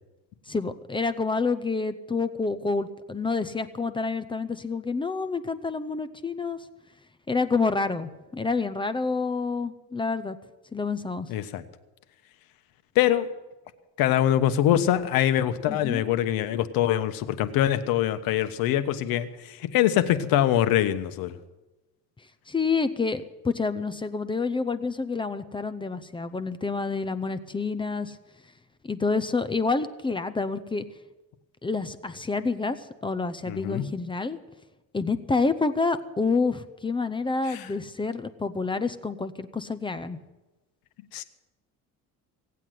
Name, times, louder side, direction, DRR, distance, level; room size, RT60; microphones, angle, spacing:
voice 1, 0.5-6.6 7.3-10.4 10.7-11.3 15.7-16.0 22.5-28.2 28.8-30.8 31.6-34.4 34.9-40.2, left 4 dB, 15° left, 12 dB, 0.6 m, -28 dB
voice 2, 11.3-11.6 12.9-13.3 14.0-21.4 33.5-33.8 37.5-37.7 41.1-41.2, left 11 dB, 75° left, 11 dB, 1.2 m, -24 dB
17.5 x 8.4 x 9.2 m, 1.1 s
cardioid pair, 135°, 35 cm